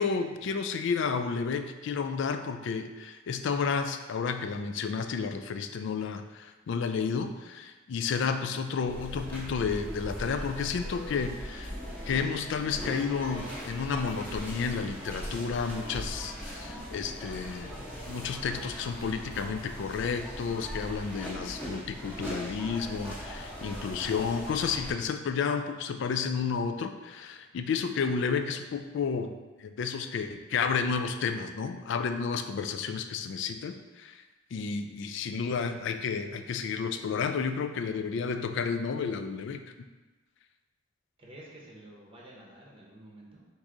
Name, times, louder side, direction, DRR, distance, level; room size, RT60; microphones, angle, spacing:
voice 1, 0.0-11.7 12.1-17.7 18.1-29.3 29.6-34.2 34.5-39.6, left 5 dB, 65° left, 8 dB, 0.3 m, -31 dB
sound 1, 8.9-24.9, equal, 10° left, 0.9 m, -40 dB
sound 2, 10.0-16.2, right 1 dB, 60° right, 0.7 m, -52 dB
voice 2, 41.2-43.5, right 1 dB, 30° right, -3 dB, 0.8 m, -50 dB
4.7 x 2.6 x 3.7 m, 1.2 s
head